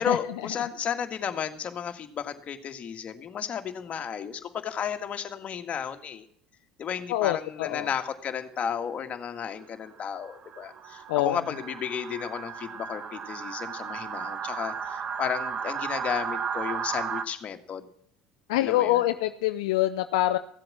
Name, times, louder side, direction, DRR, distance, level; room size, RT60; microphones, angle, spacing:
voice 1, 0.0-6.3 6.8-17.9 18.6-19.0, left 8 dB, 45° left, 6 dB, 1.8 m, -33 dB
voice 2, 7.1-7.9 11.1-11.4 18.5-20.4, left 14 dB, 80° left, 9 dB, 0.6 m, -25 dB
sound 1, 8.6-8.9 9.4-17.3, right 7 dB, 45° right, 1.2 m, -35 dB
15.5 x 7.8 x 7.4 m, 0.67 s
hypercardioid pair, 75°, 3 cm